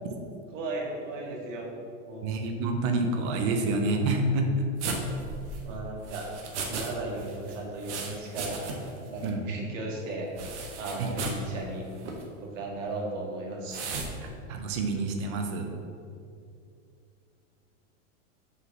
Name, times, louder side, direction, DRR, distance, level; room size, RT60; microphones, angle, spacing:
voice 1, 0.5-1.7 2.1-2.4 5.7-6.3 6.6-8.6 9.1-10.3 10.8-11.9 12.4-13.9, right 2 dB, 90° right, -1 dB, 1.9 m, -36 dB
voice 2, 2.2-4.6 9.2-9.4 11.0-11.1 14.2-15.7, right 2 dB, 25° right, 4 dB, 0.4 m, -28 dB
sound 1, 4.8-6.9 7.2-9.0 9.2-9.3 10.4-11.5 12.0-12.2 13.7-14.1, right 4 dB, 65° right, 1.4 m, -36 dB
6.5 x 4.8 x 6.0 m, 2.4 s
supercardioid pair, 175°, 37 cm